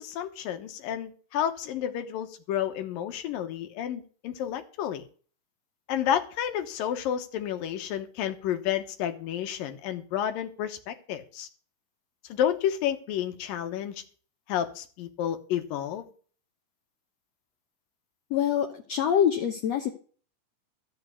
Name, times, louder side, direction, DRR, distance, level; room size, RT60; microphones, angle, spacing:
voice 1, 0.0-5.0 5.9-11.5 12.3-14.0 14.5-16.1, left 10 dB, 85° left, 8 dB, 2.9 m, -30 dB
voice 2, 18.3-19.9, left 9 dB, 60° left, 3 dB, 2.0 m, -25 dB
13.5 x 6.2 x 8.3 m, 0.42 s
omnidirectional pair, 3.9 m